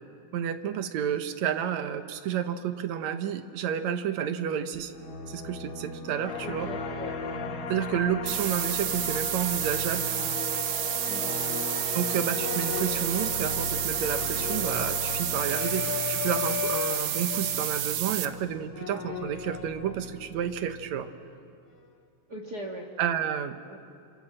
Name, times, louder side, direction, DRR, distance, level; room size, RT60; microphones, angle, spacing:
voice 1, 0.3-4.9 5.3-6.7 7.7-10.1 11.9-21.1 23.0-23.6, right 9 dB, 70° right, 9 dB, 2.2 m, -30 dB
sound 1, 4.7-21.4, left 3 dB, 45° left, 2.7 m, -39 dB
sound 2, 6.3-17.6, left 8 dB, 75° left, 1.1 m, -37 dB
voice 2, 6.4-7.2 11.1-11.4 22.3-22.9 23.7-23.8, right 1 dB, 40° right, 2 dB, 1.8 m, -39 dB
sound 3, 8.3-18.3, right 12 dB, 85° right, 2.5 m, -30 dB
30.0 x 26.0 x 7.6 m, 2.5 s
omnidirectional pair, 3.5 m